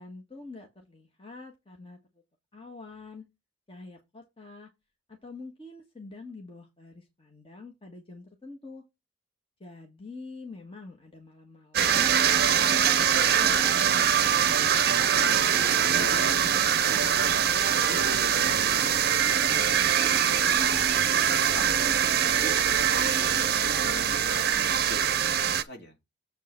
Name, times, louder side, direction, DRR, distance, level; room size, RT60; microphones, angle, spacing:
voice 1, 0.0-2.0 2.5-3.3 3.7-4.7 5.1-8.8 9.6-14.7, left 3 dB, 30° left, 1.4 m, -46 dB
sound 1, 11.7-25.6, right 8 dB, 50° right, 0.6 m, -23 dB
voice 2, 15.9-17.3 17.6-18.0 18.3-21.8 22.2-25.9, equal, 55° left, 2.5 m, -43 dB
7.6 x 5.5 x 4.3 m
head